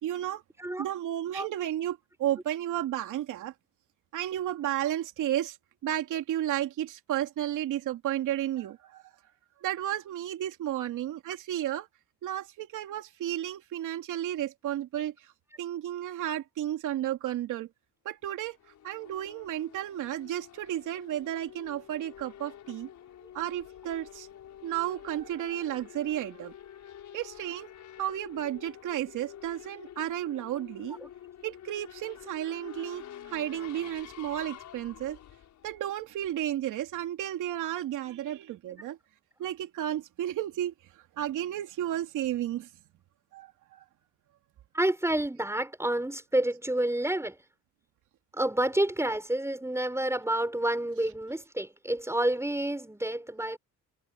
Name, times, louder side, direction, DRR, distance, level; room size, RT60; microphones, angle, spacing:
voice 1, 0.0-0.4 0.8-3.5 4.1-5.6 5.8-9.0 9.6-11.9 12.2-15.1 15.6-17.7 18.0-18.6 18.8-22.9 23.3-24.3 24.6-26.5 27.1-27.7 28.0-31.0 31.4-35.2 35.6-39.0 39.4-40.7 41.2-42.7 43.3-43.8, right 12 dB, 85° right, 3.0 m, -33 dB
Race car auto racing / Accelerating revving vroom, 18.3-36.5, left 10 dB, 70° left, 6.5 m, -48 dB
voice 2, 44.7-47.4 48.3-53.6, right 1 dB, 10° right, 6.8 m, -29 dB
cardioid pair, 90°, 30 cm